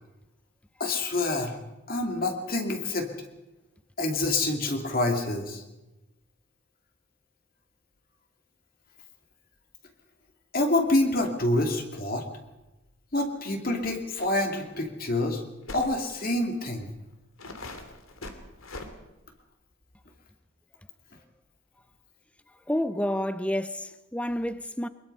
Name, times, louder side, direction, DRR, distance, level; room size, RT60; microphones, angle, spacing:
voice 1, 0.8-1.6 1.9-3.1 4.0-5.6 10.5-12.3 13.1-15.4 15.7-16.9, left 2 dB, 45° left, 2.5 m, -27 dB
sound 1, 14.2-14.3 14.6-14.7 15.7-15.9 16.7-16.8 17.4-18.9, left 2 dB, 80° left, 2.7 m, -41 dB
voice 2, 22.7-24.9, left 1 dB, 5° left, 0.6 m, -29 dB
23.5 x 21.0 x 5.5 m
head